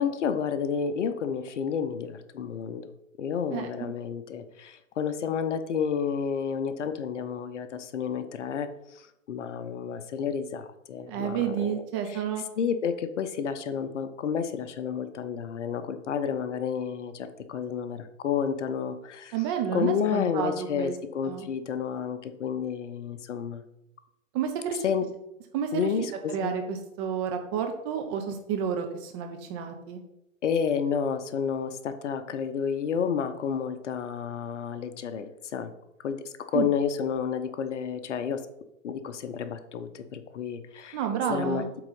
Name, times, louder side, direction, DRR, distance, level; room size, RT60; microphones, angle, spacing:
voice 1, 0.0-2.9 3.2-11.8 12.1-12.2 12.6-19.3 19.7-23.6 24.8-25.1 25.7-26.5 30.4-35.7 36.0-38.5 38.8-41.0 41.3-41.8, left 7 dB, 60° left, 10 dB, 0.9 m, -30 dB
voice 2, 11.1-12.4 19.3-20.9 21.2-21.5 24.3-24.8 25.5-25.9 26.3-30.0 36.5-36.7 40.9-41.7, right 8 dB, 20° right, 5 dB, 0.5 m, -30 dB
8.0 x 3.9 x 5.4 m, 0.87 s
hypercardioid pair, 135°, 40 cm